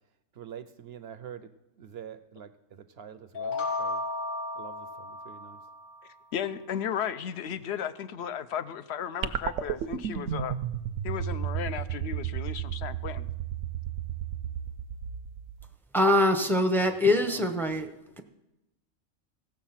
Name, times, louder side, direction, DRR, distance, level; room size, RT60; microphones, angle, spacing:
voice 1, 0.4-1.5 1.8-4.0 4.5-5.6 16.8-17.4, right 8 dB, 60° right, 11 dB, 0.7 m, -45 dB
sound 1, 3.3-6.1, left 2 dB, 80° left, 1.5 m, -34 dB
voice 2, 6.3-10.6 11.0-13.3, left 8 dB, 65° left, 13 dB, 0.8 m, -34 dB
sound 2, 9.2-15.7, right 10 dB, 80° right, 1.0 m, -33 dB
voice 3, 15.9-17.9, left 1 dB, ahead, 6 dB, 0.5 m, -23 dB
16.0 x 7.1 x 5.7 m, 0.93 s
omnidirectional pair, 1.4 m